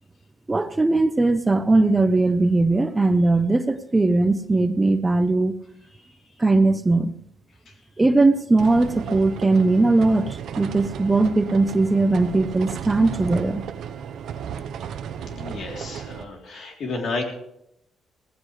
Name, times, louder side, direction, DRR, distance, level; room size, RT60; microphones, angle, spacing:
voice 1, 0.5-5.5 6.4-7.1 8.0-13.6, right 2 dB, 20° right, 11 dB, 0.8 m, -19 dB
sound 1, 8.6-16.3, right 8 dB, 75° right, 0.9 m, -34 dB
voice 2, 15.2-17.2, left 3 dB, 60° left, 1 dB, 3.3 m, -32 dB
17.5 x 15.0 x 3.3 m, 0.78 s
cardioid pair, 90°, 0 cm